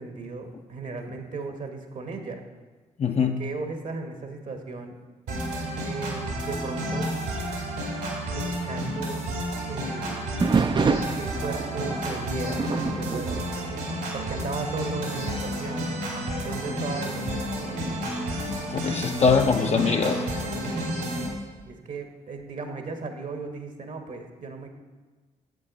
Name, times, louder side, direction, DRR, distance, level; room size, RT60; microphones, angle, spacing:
voice 1, 0.0-2.4 3.4-4.9 5.8-7.1 8.3-9.4 9.6-10.4 11.1-13.5 14.1-15.9 16.4-17.3 21.6-24.7, right 4 dB, 55° right, 5 dB, 1.2 m, -36 dB
voice 2, 3.0-3.4 18.5-20.3, left 5 dB, 40° left, 3 dB, 0.6 m, -23 dB
sound 1, 5.3-21.3, equal, 80° right, 2.1 m, -31 dB
sound 2, 10.4-14.5 14.9-15.2 15.8-15.9 16.7-19.4 21.2-21.7, right 5 dB, 30° right, 0.4 m, -30 dB
7.6 x 7.5 x 3.9 m, 1.3 s
hypercardioid pair, 45°, 16 cm